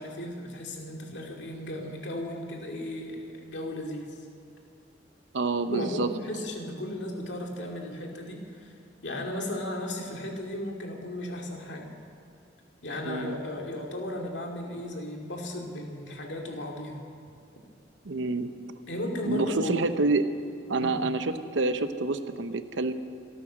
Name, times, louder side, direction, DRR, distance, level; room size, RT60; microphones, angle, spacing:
voice 1, 0.0-4.2 5.7-8.8 9.0-11.9 12.8-17.0 18.9-19.9 20.8-21.1, left 1 dB, 70° left, 1 dB, 2.3 m, -35 dB
voice 2, 5.3-6.1 13.0-13.4 18.0-18.5 19.2-20.2 20.7-22.9, right 3 dB, 80° right, 10 dB, 0.8 m, -27 dB
25.5 x 9.2 x 6.2 m, 2.5 s
head